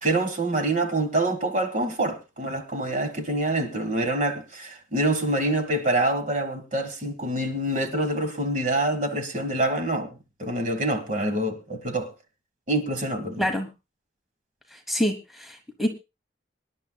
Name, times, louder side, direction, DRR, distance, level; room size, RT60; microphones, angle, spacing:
voice 1, 0.0-10.1 10.4-12.1 12.7-13.5, right 1 dB, 40° right, 1.5 m, -26 dB
voice 2, 14.7-15.9, equal, ahead, 1.1 m, -27 dB
25.0 x 10.5 x 2.3 m
head